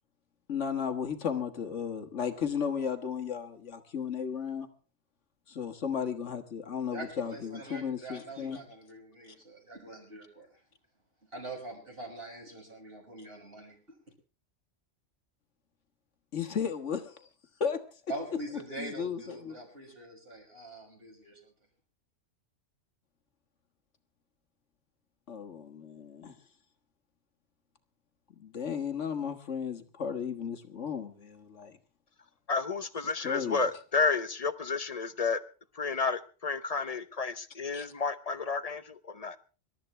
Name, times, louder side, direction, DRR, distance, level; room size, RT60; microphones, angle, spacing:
voice 1, 0.5-4.7 5.5-8.6 16.3-17.3 17.6-18.0 18.8-19.5 25.3-26.4 28.4-31.7 33.2-33.6 37.7-37.9, left 7 dB, 75° left, 6 dB, 1.8 m, -34 dB
voice 2, 6.9-10.5 11.3-14.0 18.1-21.5, right 2 dB, 50° right, 0 dB, 6.6 m, -43 dB
voice 3, 32.5-35.4 35.7-39.4, left 4 dB, 35° left, 12 dB, 0.8 m, -31 dB
25.5 x 13.0 x 3.2 m, 0.35 s
omnidirectional pair, 1.2 m